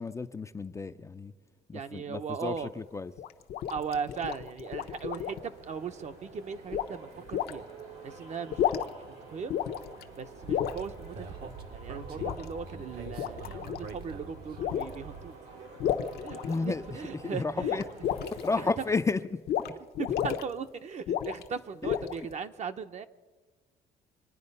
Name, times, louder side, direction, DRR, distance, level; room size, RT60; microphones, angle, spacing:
voice 1, 0.0-1.3 1.7-3.1 16.5-16.8 17.2-17.8 18.4-19.4 19.7-19.8 21.8-21.9, left 4 dB, 15° left, 9 dB, 0.5 m, -32 dB
voice 2, 1.7-2.7 3.7-7.6 8.0-8.6 9.1-9.5 10.2-15.3 16.2-17.8 20.0-23.1, right 6 dB, 45° right, 9 dB, 0.9 m, -38 dB
sound 1, 3.2-5.5 6.7-6.9 7.3-7.5 8.4-9.1 9.5-10.0 10.5-10.8 12.2-12.4 13.0-13.9 14.6-15.0 15.8-16.9 17.6-18.5 19.5-19.7 19.9-20.4 21.1-21.5 21.8-22.3, left 10 dB, 70° left, 0.9 m, -31 dB
sound 2, 4.6-19.0, right 3 dB, 90° right, 4.3 m, -49 dB
Speech, 10.4-15.3, right 4 dB, 65° right, 1.5 m, -44 dB
25.5 x 9.6 x 5.5 m, 1.3 s
cardioid pair, 110°, 17 cm